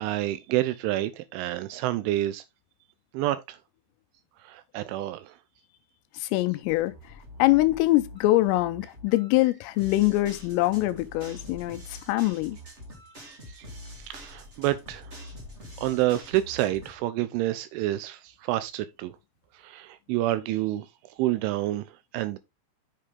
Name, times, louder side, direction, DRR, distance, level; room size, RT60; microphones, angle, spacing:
voice 1, 0.0-2.4 3.1-3.6 4.4-5.4 13.5-13.7 14.0-15.1 15.8-19.1 19.5-20.9 21.2-22.4, right 15 dB, 80° right, 2.9 m, -28 dB
voice 2, 6.1-6.9 7.4-12.6, left 17 dB, 85° left, 3.2 m, -24 dB
sound 1, 6.7-17.0, left 1 dB, 45° right, 0.8 m, -45 dB
7.7 x 6.6 x 3.5 m
omnidirectional pair, 6.0 m